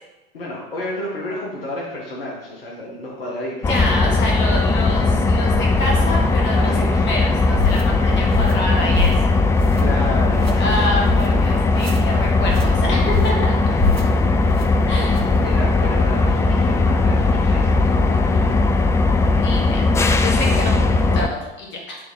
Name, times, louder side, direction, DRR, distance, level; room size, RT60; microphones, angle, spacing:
voice 1, 0.3-4.1 6.5-7.1 9.7-11.1 13.7-18.9 20.4-20.7, left 1 dB, 70° left, -3 dB, 1.5 m, -32 dB
sound 1, 3.6-21.3, left 3 dB, 10° left, 0.3 m, -18 dB
voice 2, 3.7-9.1 10.6-13.5 14.9-15.3 19.3-19.8 20.2-22.0, left 1 dB, 40° left, -1 dB, 1.9 m, -27 dB
sound 2, 7.6-7.8 8.3-8.6 8.9-9.3 9.6-10.0 10.3-10.5 11.0-11.3 11.7-12.0 12.4-12.7 13.1-13.4 13.8-14.1 14.5-14.7 15.1-15.4, left 4 dB, 85° right, 0.8 m, -25 dB
9.4 x 3.6 x 3.9 m, 1.0 s
figure-of-eight pair, 75°, 30 cm